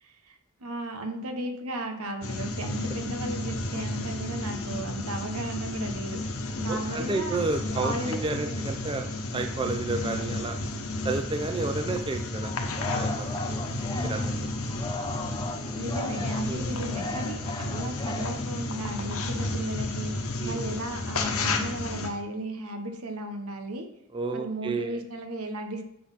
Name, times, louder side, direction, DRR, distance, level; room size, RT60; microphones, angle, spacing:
voice 1, 0.0-7.4 7.7-8.6 13.9-14.3 15.7-20.1 20.4-23.9 24.3-25.8, right 1 dB, 85° right, 5 dB, 1.1 m, -35 dB
sound 1, 2.2-22.1, left 2 dB, 75° left, 0.9 m, -32 dB
voice 2, 6.7-9.1 9.3-10.6 11.0-12.5 12.9-13.6 14.0-14.3 16.5-16.6 20.4-20.6 24.1-25.0, right 3 dB, 20° right, 4 dB, 0.4 m, -31 dB
Singing, 12.4-18.8, left 2 dB, 20° left, 0.6 m, -37 dB
7.5 x 4.0 x 5.7 m, 0.76 s
head